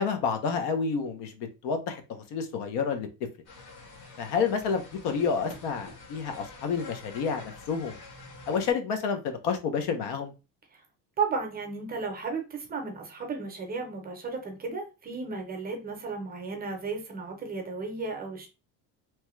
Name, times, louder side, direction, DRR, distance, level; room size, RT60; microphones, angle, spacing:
voice 1, 0.0-3.1 4.2-8.0 8.5-10.3, left 5 dB, 85° left, 0.8 m, -29 dB
sound 1, 3.5-8.7, left 3 dB, 65° left, 1.3 m, -47 dB
voice 2, 11.2-18.5, right 4 dB, 25° right, 0.6 m, -34 dB
3.0 x 2.2 x 3.0 m
cardioid pair, 165°, 40 cm